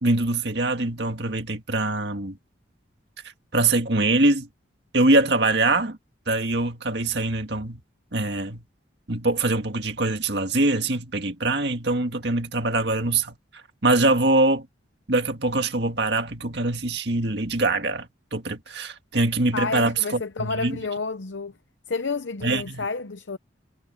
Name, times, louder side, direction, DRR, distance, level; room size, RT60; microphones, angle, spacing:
voice 1, 0.0-2.4 3.5-4.5 4.9-6.0 6.3-7.8 8.1-8.6 9.1-13.3 13.8-14.7 15.1-18.1 18.3-20.8 22.4-22.8, right 2 dB, 60° right, 2.0 m, -23 dB
voice 2, 19.5-21.5 21.9-23.4, left 4 dB, 65° left, 0.7 m, -30 dB
head